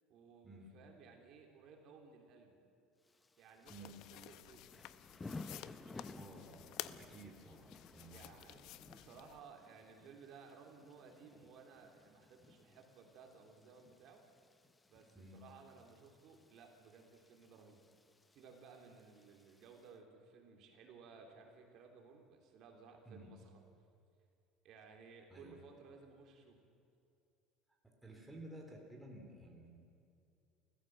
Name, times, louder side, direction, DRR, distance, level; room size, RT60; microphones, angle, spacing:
voice 1, 0.1-2.5 3.4-4.8 5.6-6.5 8.1-14.2 14.9-17.8 18.3-23.6 24.6-26.6, right 5 dB, 45° right, 2 dB, 3.1 m, -59 dB
Thunder / Rain, 3.0-19.9, left 3 dB, 10° left, 0.7 m, -57 dB
sound 1, 3.7-9.4, left 14 dB, 55° left, 0.7 m, -52 dB
voice 2, 6.1-8.6 15.1-15.4 23.1-23.3 25.3-25.6 27.8-29.8, right 2 dB, 5° right, 0 dB, 3.0 m, -54 dB
29.5 x 14.5 x 7.6 m, 2.5 s
cardioid pair, 165°, 0 cm